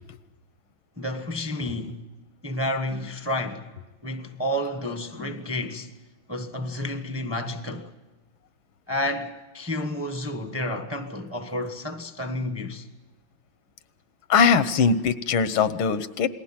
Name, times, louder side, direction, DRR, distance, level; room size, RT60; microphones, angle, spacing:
voice 1, 1.0-2.0 2.4-3.7 4.0-5.9 6.3-7.9 8.9-12.9, left 1 dB, 10° right, 0.9 m, -30 dB
voice 2, 14.3-16.3, left 6 dB, 80° left, 1.8 m, -21 dB
28.5 x 20.5 x 5.9 m
omnidirectional pair, 2.2 m